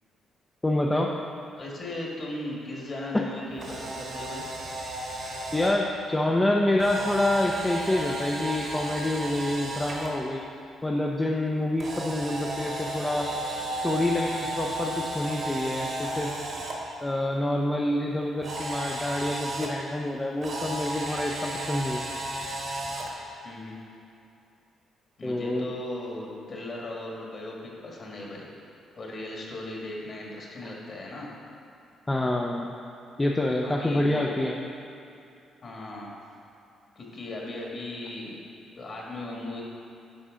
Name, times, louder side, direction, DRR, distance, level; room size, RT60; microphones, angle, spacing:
voice 1, 0.6-1.1 3.1-3.3 5.5-10.4 10.8-13.3 13.8-16.3 17.0-22.0 25.2-25.6 30.6-30.7 32.1-32.7 33.2-34.6, left 1 dB, 15° left, -1 dB, 0.5 m, -27 dB
voice 2, 1.6-4.5 23.4-23.8 25.2-28.5 29.0-31.3 33.6-34.3 35.6-36.1 36.9-38.4 38.8-39.6, left 1 dB, 45° left, -2 dB, 1.5 m, -37 dB
Camera, 3.5-5.7 6.8-10.1 11.8-16.7 18.4-19.7 20.4-23.1, right 1 dB, 55° right, 1.4 m, -34 dB
10.5 x 4.1 x 3.7 m, 2.7 s
cardioid pair, 90°, 0 cm